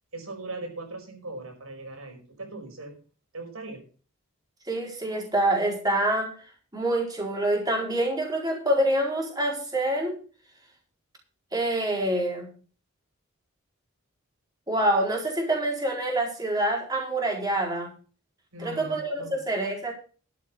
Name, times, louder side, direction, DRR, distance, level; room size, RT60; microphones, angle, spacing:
voice 1, 0.1-3.0 3.3-3.8 18.5-19.3, right 2 dB, 85° right, 3 dB, 5.3 m, -39 dB
voice 2, 4.7-6.3 6.7-10.2 11.5-12.5 14.7-17.9 18.6-19.9, right 1 dB, 20° right, -1 dB, 4.4 m, -26 dB
12.0 x 7.6 x 6.2 m, 0.40 s
head